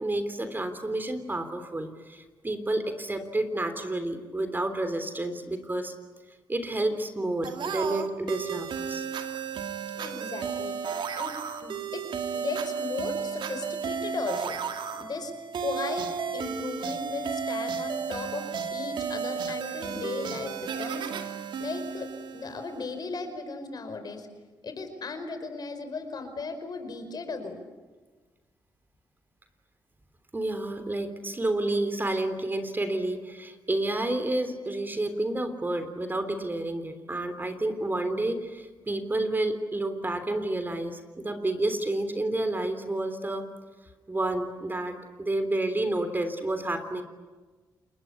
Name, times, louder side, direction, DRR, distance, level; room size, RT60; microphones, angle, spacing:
voice 1, 0.0-5.9 6.5-9.0 30.3-43.5 44.1-47.0, right 2 dB, 25° right, 9 dB, 3.4 m, -30 dB
sound 1, 7.4-22.9, right 6 dB, 75° right, 2.3 m, -33 dB
voice 2, 9.9-10.8 11.1-11.4 11.6-12.1 12.3-14.6 14.9-15.3 15.6-21.1 21.6-24.3 24.6-27.6, left 4 dB, 55° left, 8 dB, 5.1 m, -36 dB
29.0 x 20.5 x 9.9 m, 1.3 s
cardioid pair, 70°, 8 cm